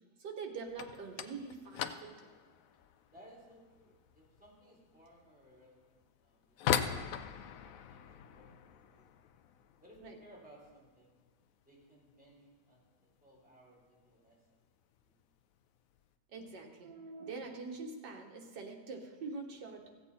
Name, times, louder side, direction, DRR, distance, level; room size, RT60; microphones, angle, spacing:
voice 1, 0.2-2.1 10.0-10.2 16.3-19.9, right 4 dB, 85° right, 2 dB, 1.9 m, -44 dB
sound 1, 0.7-11.4 11.7-12.3 12.6-12.9 13.2-13.3 14.0-14.1 15.0-15.2 15.6-16.0, left 8 dB, 70° left, 0.8 m, -41 dB
voice 2, 3.1-7.1 7.9-8.0 8.3-9.0 9.8-11.2 11.6-12.8 13.2-14.6 14.9-15.1, equal, 5° right, -6 dB, 3.7 m, -60 dB
15.5 x 8.1 x 4.1 m, 1.4 s
omnidirectional pair, 1.8 m